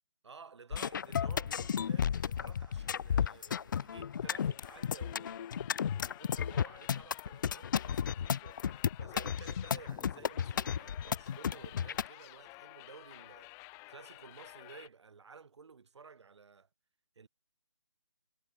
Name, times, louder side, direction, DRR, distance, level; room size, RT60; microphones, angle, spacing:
voice 1, 0.2-5.4 5.9-13.5 13.9-16.7 17.2-17.3, right 5 dB, 65° right, 3.0 m, -54 dB
sound 1, 0.7-12.1, left 8 dB, 40° left, 0.4 m, -33 dB
sound 2, 4.2-14.9, left 27 dB, 20° left, 3.4 m, -53 dB
figure-of-eight pair, 155°, 16 cm